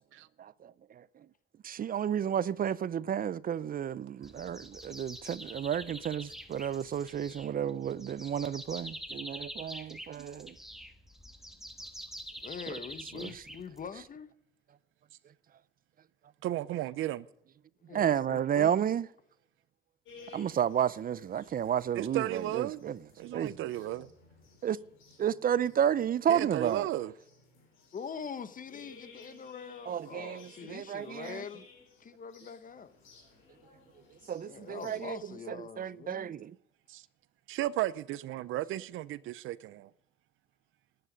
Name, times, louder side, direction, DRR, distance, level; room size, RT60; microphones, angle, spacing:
voice 1, 0.4-1.0 1.6-10.5 13.2-13.3 17.9-19.1 20.3-23.0 23.3-23.6 24.6-24.8 25.2-26.9 29.9-31.4 34.3-35.2 35.5-36.6, right 9 dB, 45° right, 0.5 m, -31 dB
sound 1, 4.2-14.1, equal, ahead, 1.4 m, -46 dB
voice 2, 12.4-14.3 17.9-18.8 27.9-31.7 32.0-32.9 34.4-36.3, left 6 dB, 45° left, 1.1 m, -43 dB
voice 3, 16.4-17.3 21.9-22.8 23.2-24.1 26.3-27.1 36.9-37.0 37.5-39.9, right 14 dB, 85° right, 0.6 m, -34 dB
sound 2, 20.0-35.1, left 4 dB, 85° left, 4.9 m, -57 dB
13.0 x 10.0 x 5.1 m
cardioid pair, 90°, 20 cm